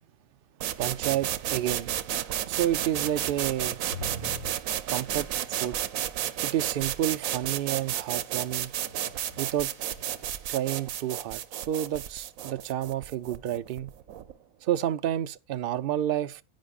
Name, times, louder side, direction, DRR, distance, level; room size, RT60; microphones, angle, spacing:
sound 1, 0.6-14.3, right 11 dB, 85° right, 1.1 m, -32 dB
voice 1, 0.8-1.9 2.5-3.8 4.9-5.8 6.4-8.7 9.4-9.7 10.5-13.9 14.6-16.4, right 12 dB, 60° right, 0.6 m, -30 dB
sound 2, 3.8-5.7 8.5-10.5, left 2 dB, 60° left, 2.4 m, -44 dB
10.5 x 9.5 x 2.3 m
omnidirectional pair, 1.4 m